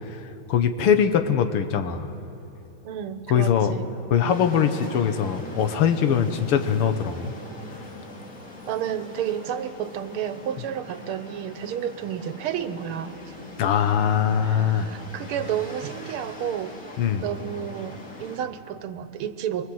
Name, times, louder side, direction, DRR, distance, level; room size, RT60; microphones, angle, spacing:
voice 1, 0.5-2.1 3.3-3.8 4.1-7.3 13.6-14.9 17.0-17.3, left 8 dB, 85° left, 7 dB, 2.0 m, -22 dB
voice 2, 2.8-3.9 8.7-13.1 14.4-16.7 17.2-19.7, right 9 dB, 80° right, 11 dB, 1.7 m, -31 dB
sound 1, 4.3-18.4, left 1 dB, 50° left, 3.5 m, -41 dB
24.0 x 23.0 x 7.8 m, 2.8 s
omnidirectional pair, 2.4 m